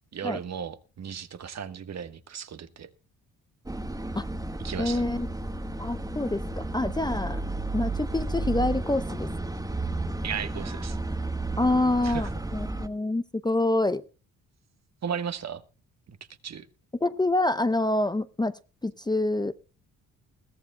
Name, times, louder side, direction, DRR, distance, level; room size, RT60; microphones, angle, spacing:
voice 1, 0.1-2.9 4.6-5.0 10.2-11.0 12.0-12.3 15.0-15.6 16.1-16.2 16.4-16.7, right 7 dB, 50° right, 11 dB, 1.3 m, -35 dB
sound 1, 3.7-12.9, right 2 dB, 10° right, 1.3 m, -32 dB
voice 2, 4.8-5.3 5.8-7.4 7.7-9.3 11.6-14.0 17.0-19.5, left 2 dB, 10° left, 13 dB, 0.7 m, -26 dB
21.5 x 14.5 x 2.2 m, 0.33 s
supercardioid pair, 70°, 34 cm